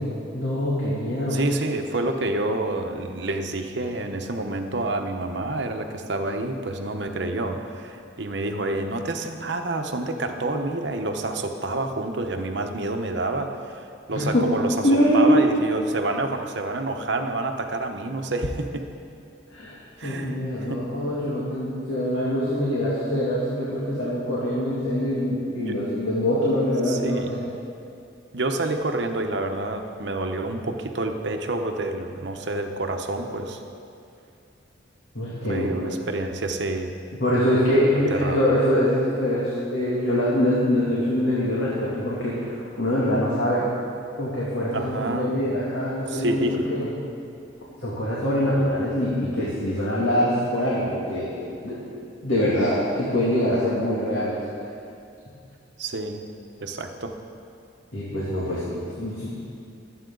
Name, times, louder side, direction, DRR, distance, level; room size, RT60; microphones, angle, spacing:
voice 1, 0.0-1.4 14.1-14.5 14.8-15.4 19.5-19.7 20.0-27.4 35.1-35.9 37.2-43.7 44.2-46.9 47.8-51.8 52.2-54.4 57.9-59.3, equal, 75° left, -8 dB, 2.6 m, -24 dB
voice 2, 1.3-18.9 20.0-20.8 25.7-25.8 26.9-27.3 28.3-33.6 35.5-36.9 38.1-38.4 44.7-45.3 46.1-46.7 55.8-56.3 56.6-57.2, right 2 dB, 60° right, 5 dB, 1.0 m, -28 dB
24.0 x 8.8 x 3.9 m, 2.5 s
head